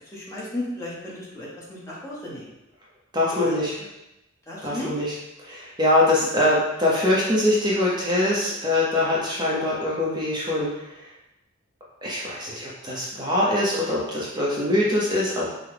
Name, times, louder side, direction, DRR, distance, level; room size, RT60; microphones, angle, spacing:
voice 1, 0.1-2.5 3.4-3.5 4.5-4.9, left 1 dB, 15° left, -6 dB, 1.1 m, -34 dB
voice 2, 3.1-3.7 4.6-11.0 12.0-15.5, left 1 dB, 20° right, -6 dB, 0.9 m, -23 dB
5.7 x 2.3 x 3.5 m, 0.90 s
head